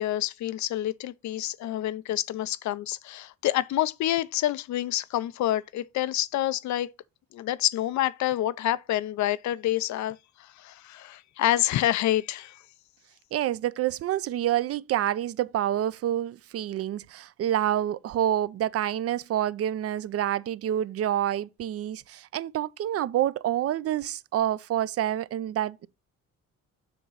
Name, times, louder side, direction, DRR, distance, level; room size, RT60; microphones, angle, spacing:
voice 1, 0.0-6.9 7.3-12.6, left 13 dB, 70° left, 0.5 m, -28 dB
voice 2, 13.3-25.9, right 11 dB, 50° right, 0.4 m, -28 dB
7.1 x 3.0 x 5.4 m
cardioid pair, 90°, 30 cm